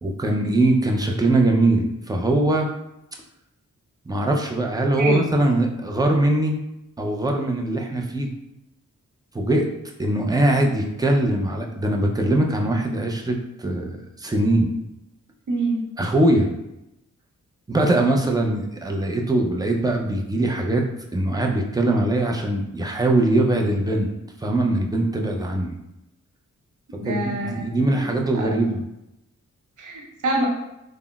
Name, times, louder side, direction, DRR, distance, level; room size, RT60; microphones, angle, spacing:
voice 1, 0.0-2.7 4.1-6.6 7.0-8.3 9.3-9.7 10.0-14.7 16.0-16.5 17.7-20.8 21.1-24.1 24.4-25.8 27.0-28.8, right 1 dB, 10° right, 2 dB, 0.4 m, -21 dB
voice 2, 15.5-15.9 27.0-28.1 28.3-28.7 29.8-30.5, right 2 dB, 70° right, -1 dB, 0.7 m, -26 dB
3.6 x 2.0 x 2.3 m, 0.88 s
cardioid pair, 55°, 32 cm